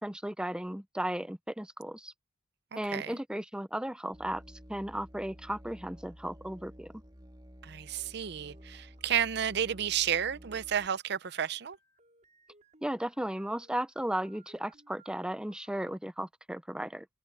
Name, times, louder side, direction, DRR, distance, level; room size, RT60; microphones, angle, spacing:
voice 1, 0.0-2.1 2.7-4.4 4.7-6.9 12.8-17.1, right 1 dB, 5° right, 0.6 m, -35 dB
voice 2, 2.7-3.2 7.6-11.8, right 9 dB, 60° right, 0.6 m, -32 dB
Musical instrument, 4.1-10.9, equal, 25° right, 2.5 m, -52 dB
sound 1, 8.0-16.0, right 3 dB, 40° right, 5.4 m, -63 dB
head